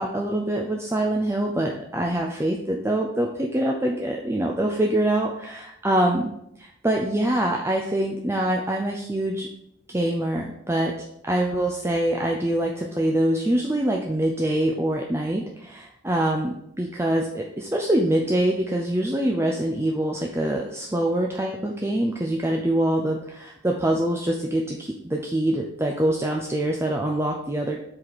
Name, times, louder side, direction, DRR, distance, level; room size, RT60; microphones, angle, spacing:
voice 1, 0.0-6.3 6.6-9.5 9.9-10.9 11.2-27.8, right 1 dB, 15° right, 0 dB, 0.5 m, -24 dB
7.5 x 4.8 x 4.0 m, 0.77 s
head